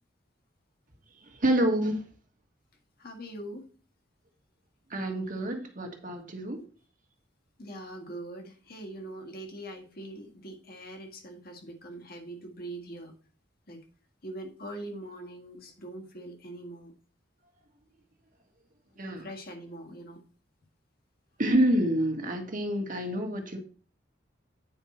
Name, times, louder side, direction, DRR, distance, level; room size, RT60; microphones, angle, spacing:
voice 1, 1.2-2.0 4.9-6.6 19.0-19.3 21.4-23.6, right 1 dB, 45° right, 4 dB, 1.4 m, -27 dB
voice 2, 3.0-3.7 7.6-13.1 13.7-13.8 14.2-16.9 19.2-20.2, right 1 dB, 55° left, 3 dB, 1.7 m, -42 dB
8.9 x 5.4 x 4.2 m, 0.40 s
head